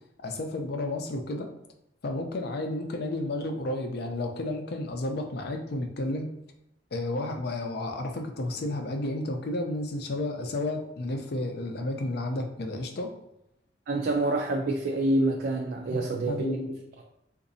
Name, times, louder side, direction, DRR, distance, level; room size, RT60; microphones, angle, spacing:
voice 1, 0.2-1.5 2.0-6.3 6.9-13.1 15.9-16.7, left 2 dB, 60° left, 0.5 m, -32 dB
voice 2, 13.9-16.8, right 2 dB, 55° right, 0.4 m, -27 dB
3.9 x 2.6 x 2.6 m
head